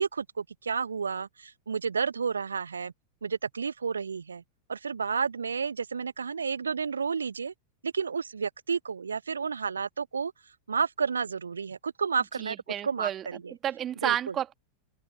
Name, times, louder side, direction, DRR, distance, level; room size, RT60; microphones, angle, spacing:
voice 1, 0.0-2.9 3.2-4.4 4.7-7.5 7.8-10.3 10.7-12.6 12.8-13.5 14.0-14.3, right 5 dB, 75° right, 1.1 m, -31 dB
voice 2, 12.4-13.2 13.6-14.5, right 10 dB, 30° right, 2.6 m, -31 dB
open air
figure-of-eight pair, 90°, 0 cm